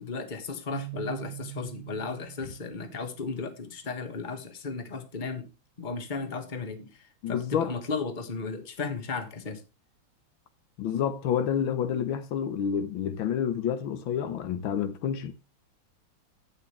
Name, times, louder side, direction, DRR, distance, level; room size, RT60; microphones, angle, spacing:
voice 1, 0.0-5.5 5.8-9.6, left 4 dB, 25° left, 1.4 m, -35 dB
Keyboard (musical), 0.7-3.6, right 23 dB, 65° right, 1.0 m, -42 dB
voice 2, 7.2-7.7 10.8-15.3, left 8 dB, 80° left, 1.8 m, -29 dB
11.5 x 8.5 x 3.2 m
omnidirectional pair, 2.1 m